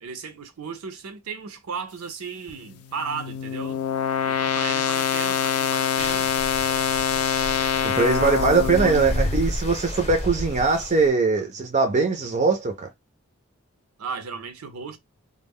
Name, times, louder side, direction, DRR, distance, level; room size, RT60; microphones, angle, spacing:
voice 1, 0.0-3.8 4.2-6.3 7.6-7.7 8.6-9.0 14.0-15.0, right 5 dB, 80° right, 0.5 m, -35 dB
sound 1, 2.5-9.6, left 8 dB, 80° left, 0.4 m, -25 dB
sound 2, 6.0-11.1, left 1 dB, 30° left, 0.7 m, -31 dB
voice 2, 7.8-12.9, right 4 dB, 35° right, 0.4 m, -21 dB
2.1 x 2.0 x 3.5 m
head